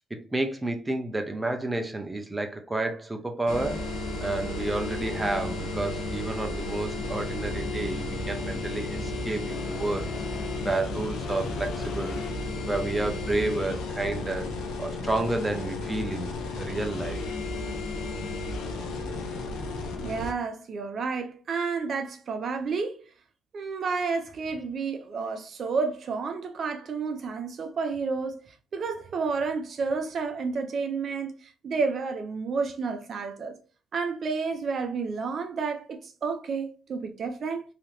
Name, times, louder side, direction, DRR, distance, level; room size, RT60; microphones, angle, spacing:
voice 1, 0.1-3.9 4.2-10.1 10.6-12.2 12.7-14.5 14.8-17.2, right 2 dB, 15° right, 0.6 m, -30 dB
sound 1, 3.5-20.3, left 2 dB, 90° left, 0.7 m, -33 dB
sound 2, 6.9-13.8, left 2 dB, 55° left, 0.6 m, -39 dB
voice 2, 20.0-23.0 23.5-33.6 33.9-37.6, right 4 dB, 55° right, 0.5 m, -30 dB
3.3 x 2.8 x 2.6 m
cardioid pair, 90°, 0 cm